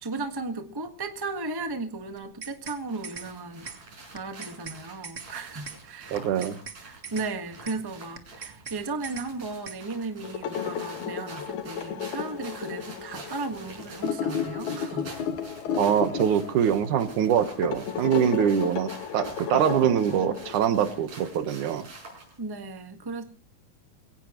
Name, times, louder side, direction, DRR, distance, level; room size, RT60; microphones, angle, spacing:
voice 1, 0.0-6.5 6.8-15.1 22.4-23.2, right 3 dB, 15° right, 6 dB, 0.8 m, -35 dB
sound 1, 2.2-2.8 3.0-3.3 3.7-3.8 4.2-4.8 5.0-5.3 5.7-5.8 6.2-6.8 7.0-7.3 7.7-7.8 8.2-8.8 9.0-9.3 9.7-9.8, right 6 dB, 35° right, 1.3 m, -40 dB
sound 2, 2.9-22.4, right 3 dB, 65° right, 6.8 m, -47 dB
voice 2, 6.1-6.6 15.8-21.9, right 8 dB, 85° right, 10 dB, 2.8 m, -24 dB
sound 3, 10.2-21.0, left 7 dB, 80° left, 2.7 m, -34 dB
21.5 x 17.5 x 3.1 m, 0.37 s
omnidirectional pair, 3.4 m